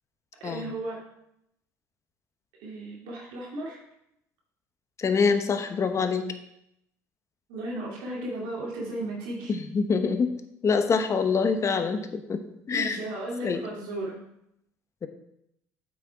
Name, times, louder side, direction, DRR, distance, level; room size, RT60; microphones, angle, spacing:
voice 1, 0.4-1.0 2.6-3.8 7.5-9.5 12.7-14.2, right 1 dB, 75° right, -3 dB, 2.4 m, -35 dB
voice 2, 5.0-6.3 9.5-10.4 10.6-12.4 12.7-13.0 13.4-13.6, left 5 dB, 35° left, 8 dB, 1.1 m, -25 dB
8.1 x 6.4 x 4.6 m, 0.80 s
hypercardioid pair, 70°, 8 cm